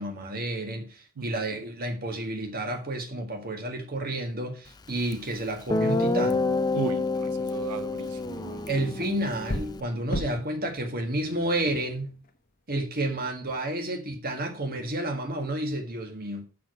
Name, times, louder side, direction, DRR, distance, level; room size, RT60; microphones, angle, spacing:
voice 1, 0.0-6.4 8.7-12.2 12.7-16.4, right 1 dB, 40° right, 1.7 m, -31 dB
Guitar, 5.1-5.2 5.7-9.8, left 3 dB, 20° left, 0.4 m, -28 dB
voice 2, 6.7-8.7, right 5 dB, 90° right, 0.5 m, -37 dB
sound 1, 7.6-12.4, left 1 dB, 40° left, 0.9 m, -39 dB
6.4 x 5.9 x 5.9 m
head